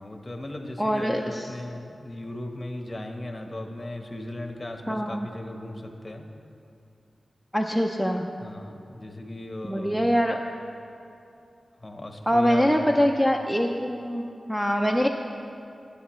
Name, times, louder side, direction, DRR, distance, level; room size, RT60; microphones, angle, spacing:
voice 1, 0.0-6.3 8.4-10.1 11.8-13.0, left 1 dB, 25° left, 3 dB, 1.1 m, -37 dB
voice 2, 0.8-1.5 4.9-5.3 7.5-8.2 9.6-10.4 12.3-15.1, equal, 5° right, 2 dB, 0.5 m, -24 dB
20.0 x 8.4 x 3.1 m, 2.6 s
wide cardioid pair, 90°, 0 cm